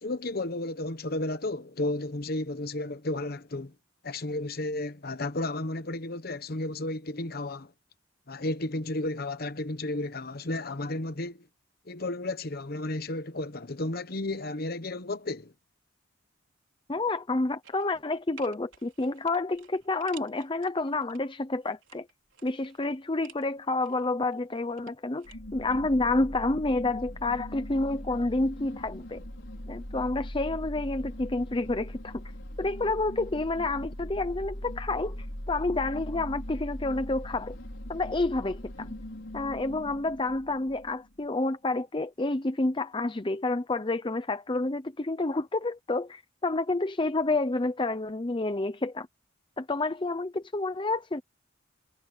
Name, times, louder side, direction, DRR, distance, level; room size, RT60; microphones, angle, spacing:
voice 1, 0.0-3.7 4.0-7.7 8.3-11.5 11.9-15.5, left 2 dB, 50° left, 1.1 m, -33 dB
voice 2, 16.9-22.0 22.4-29.2 29.7-32.2 32.6-37.6 37.9-38.9 39.3-49.1 49.6-51.2, left 2 dB, 25° left, 0.7 m, -29 dB
sound 1, 17.6-18.1 18.4-21.2 21.6-23.5 23.8-25.4 25.6-25.7, right 9 dB, 80° right, 3.8 m, -54 dB
sound 2, 25.2-41.2, equal, 75° left, 4.9 m, -40 dB
head